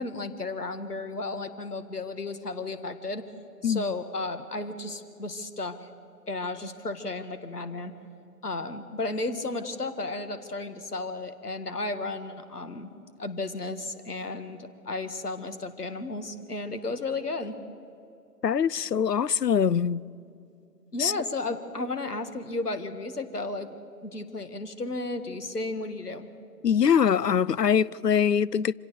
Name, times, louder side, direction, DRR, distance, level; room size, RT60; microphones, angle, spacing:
voice 1, 0.0-3.2 3.6-5.8 6.3-8.0 8.4-12.9 13.2-17.6 20.9-23.7 24.0-26.3, left 2 dB, 70° left, 1.9 m, -33 dB
voice 2, 18.4-20.0 21.0-21.1 26.6-28.7, left 7 dB, 90° left, 0.6 m, -23 dB
25.5 x 17.0 x 6.7 m
figure-of-eight pair, 160°, 48 cm